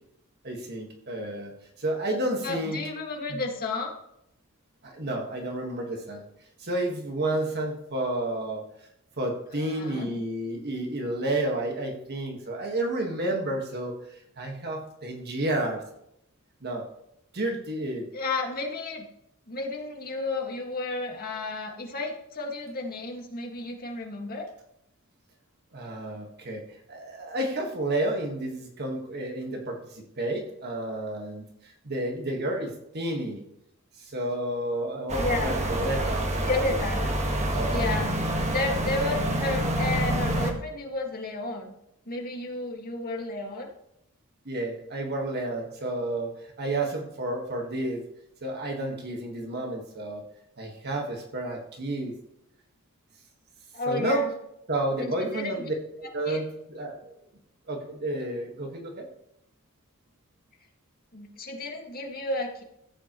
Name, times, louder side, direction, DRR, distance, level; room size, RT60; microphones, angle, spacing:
voice 1, 0.4-1.5 1.8-2.8 3.3-3.4 4.8-6.2 6.6-8.6 9.2-15.8 16.6-16.9 17.3-18.1 25.7-33.4 34.0-36.8 37.5-37.9 44.4-48.0 48.4-50.2 50.6-52.1 53.9-54.3 54.7-57.1 57.7-59.1, right 1 dB, 50° right, 2 dB, 1.6 m, -31 dB
voice 2, 2.4-3.9 9.7-10.1 18.1-19.0 19.5-24.5 35.2-35.6 36.4-37.0 37.7-38.1 38.5-41.7 42.1-43.7 53.7-54.3 55.0-55.6 56.3-56.4 61.1-62.6, left 2 dB, 45° left, 1 dB, 1.9 m, -32 dB
sound 1, 35.1-40.5, right 1 dB, 30° right, 1.5 m, -27 dB
15.0 x 8.5 x 3.1 m, 0.79 s
head